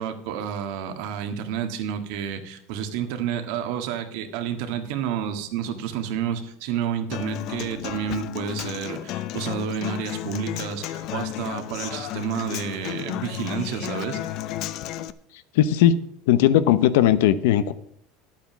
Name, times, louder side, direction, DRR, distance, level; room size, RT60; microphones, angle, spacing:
voice 1, 0.0-14.2, right 8 dB, 65° right, 7 dB, 1.6 m, -30 dB
Human voice / Acoustic guitar, 7.1-15.1, left 13 dB, 45° left, 0.5 m, -32 dB
voice 2, 15.5-16.0 16.3-17.7, left 11 dB, 90° left, 14 dB, 0.8 m, -18 dB
10.5 x 8.6 x 6.0 m, 0.72 s
cardioid pair, 165°, 0 cm